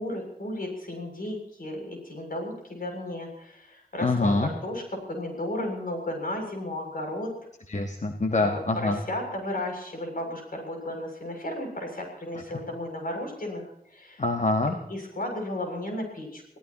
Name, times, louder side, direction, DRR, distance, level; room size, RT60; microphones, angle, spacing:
voice 1, 0.0-7.3 8.4-13.6 13.9-14.2 14.9-16.4, left 1 dB, 70° left, 2 dB, 7.4 m, -34 dB
voice 2, 4.0-4.5 7.7-9.0 14.2-14.8, left 2 dB, 50° left, 5 dB, 1.5 m, -25 dB
27.5 x 17.0 x 3.1 m, 0.73 s
wide cardioid pair, 65°, 15 cm